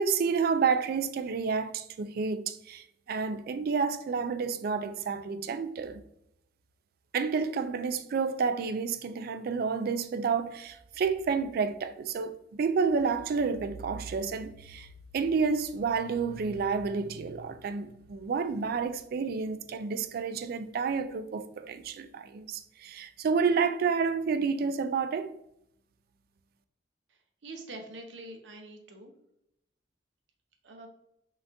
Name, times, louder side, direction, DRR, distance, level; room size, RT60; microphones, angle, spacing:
voice 1, 0.0-6.0 7.1-14.9 15.1-25.3, right 5 dB, 55° right, 0.3 m, -30 dB
voice 2, 27.4-29.1 30.6-30.9, right 2 dB, 90° right, 0.7 m, -44 dB
5.7 x 2.4 x 2.6 m
head